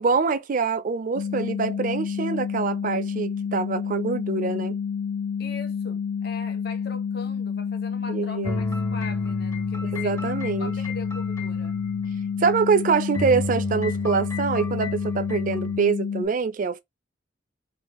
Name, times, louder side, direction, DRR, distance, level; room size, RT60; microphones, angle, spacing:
voice 1, 0.0-4.8 8.1-8.6 9.8-10.7 12.4-16.8, right 5 dB, 45° right, 0.4 m, -25 dB
sound 1, 1.2-16.3, left 7 dB, 85° left, 0.3 m, -29 dB
voice 2, 5.4-10.1 10.6-11.8, left 3 dB, 60° left, 0.9 m, -41 dB
sound 2, 8.4-12.8 13.1-15.8, left 1 dB, 15° left, 0.5 m, -33 dB
3.6 x 2.4 x 3.0 m
head